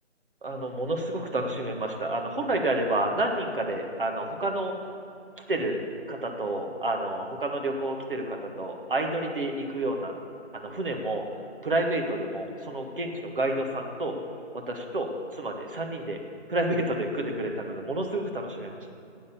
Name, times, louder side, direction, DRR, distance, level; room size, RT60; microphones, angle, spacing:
voice 1, 0.4-4.7 5.5-5.8 6.1-10.1 10.5-14.2 14.5-16.2 16.5-18.8, right 1 dB, 45° right, 2 dB, 1.6 m, -29 dB
12.0 x 8.4 x 7.0 m, 2.6 s
figure-of-eight pair, 160°, 36 cm